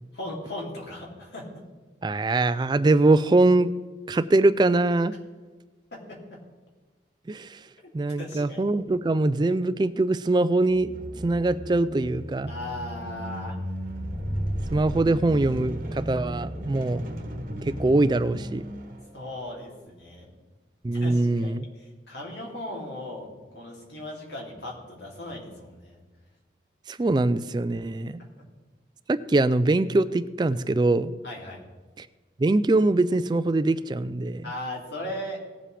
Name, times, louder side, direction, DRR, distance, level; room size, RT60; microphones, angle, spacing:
voice 1, 0.1-1.6 5.9-6.4 8.2-8.6 12.5-13.6 19.1-20.3 20.9-23.3 23.5-26.0 28.4-28.5 31.2-31.6 34.4-35.4, left 1 dB, 75° left, -2 dB, 3.0 m, -37 dB
voice 2, 2.0-3.7 4.1-5.1 7.3-7.6 7.9-10.9 11.2-12.5 14.7-17.0 17.6-18.7 20.8-21.7 26.9-28.2 29.1-31.1 32.0-32.1 32.4-34.5, right 2 dB, 25° right, 13 dB, 0.3 m, -23 dB
sound 1, 10.7-19.5, equal, 50° right, 1.1 m, -34 dB
18.5 x 7.5 x 3.4 m, 1.3 s
head